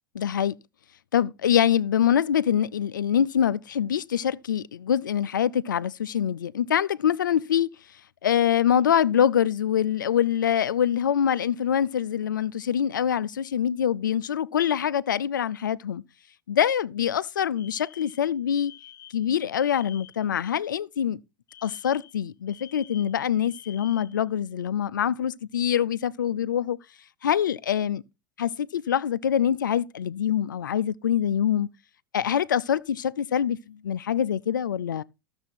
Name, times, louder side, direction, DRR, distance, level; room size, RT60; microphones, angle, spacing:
voice 1, 0.1-0.6 1.1-7.7 8.2-16.0 16.5-18.7 19.1-21.2 21.6-26.8 27.2-28.0 28.4-31.7 32.1-35.0, left 9 dB, 70° left, 0.4 m, -24 dB
Alarm, 17.6-20.3 21.5-24.2, left 11 dB, 30° left, 1.5 m, -49 dB
13.5 x 6.9 x 4.2 m
figure-of-eight pair, 80°, 11 cm